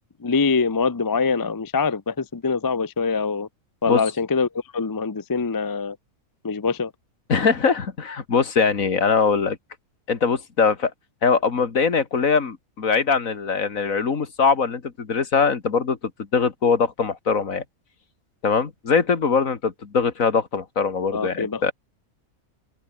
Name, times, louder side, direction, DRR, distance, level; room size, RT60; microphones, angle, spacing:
voice 1, 0.2-3.5 3.8-6.0 6.4-6.9 21.1-21.7, left 4 dB, 25° left, 0.5 m, -24 dB
voice 2, 7.3-9.6 10.1-10.9 11.2-16.0 16.3-17.6 18.4-21.7, left 5 dB, 65° left, 2.4 m, -22 dB
open air
omnidirectional pair, 1.5 m